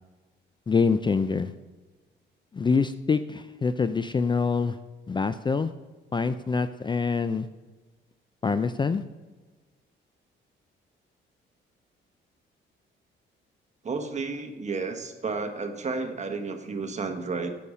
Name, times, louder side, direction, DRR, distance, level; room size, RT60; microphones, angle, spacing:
voice 1, 0.7-1.5 2.5-4.8 5.1-5.7 6.1-7.5 8.4-9.0, left 5 dB, 25° left, 12 dB, 0.4 m, -25 dB
voice 2, 13.8-17.6, right 4 dB, 35° right, 5 dB, 1.4 m, -32 dB
8.2 x 6.5 x 5.5 m, 1.3 s
cardioid pair, 90°, 20 cm